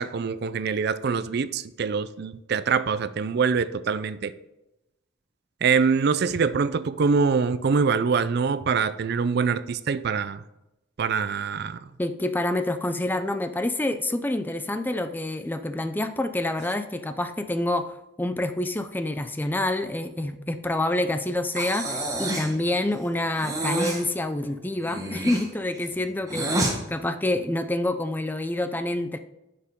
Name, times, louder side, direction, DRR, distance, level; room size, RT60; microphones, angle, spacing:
voice 1, 0.0-4.3 5.6-10.4 11.0-11.8, right 5 dB, 55° right, 15 dB, 0.4 m, -24 dB
voice 2, 12.0-29.2, left 1 dB, 10° left, 9 dB, 0.4 m, -27 dB
Breathing, 21.5-22.6 23.4-24.0 24.8-26.8, right 1 dB, 15° right, 1.3 m, -28 dB
11.0 x 6.7 x 3.6 m, 0.93 s
head